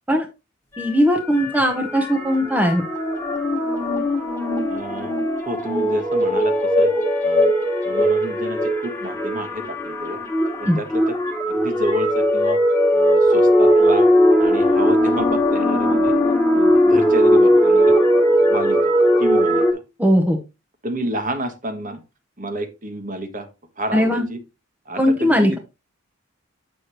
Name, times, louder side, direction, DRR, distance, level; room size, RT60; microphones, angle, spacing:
sound 1, 0.8-19.7, equal, 10° left, 1.6 m, -19 dB
voice 1, 0.8-2.9 10.7-10.8 20.0-20.4 23.9-24.2 25.0-25.6, equal, 5° right, 3 dB, 0.8 m, -18 dB
voice 2, 4.7-5.1 5.4-6.9 7.2-7.6 7.8-10.2 10.6-11.1 11.5-12.6 12.9-14.1 14.4-16.1 16.5-18.0 18.4-19.8 20.8-22.0 22.4-23.5 23.8-24.4 24.9-25.6, equal, 35° right, 7 dB, 1.2 m, -29 dB
8.2 x 6.6 x 3.0 m, 0.27 s
head